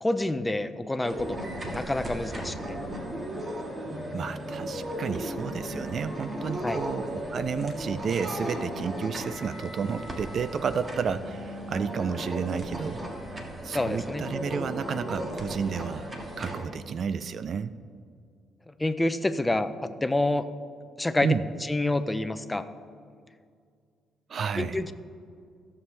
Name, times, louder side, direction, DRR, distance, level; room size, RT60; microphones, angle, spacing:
voice 1, 0.0-1.4 1.6-2.7 6.6-6.8 13.7-14.2 18.7-20.5 21.0-21.3 21.6-22.7 24.6-24.9, left 2 dB, 15° left, 11 dB, 0.5 m, -28 dB
sound 1, 1.0-16.6, equal, 30° right, 1.6 m, -36 dB
voice 2, 4.1-13.0 13.6-16.1 16.4-17.7 21.2-21.4 24.3-24.8, right 6 dB, 55° right, 14 dB, 0.3 m, -31 dB
15.5 x 7.0 x 3.3 m, 2.2 s
cardioid pair, 90°, 0 cm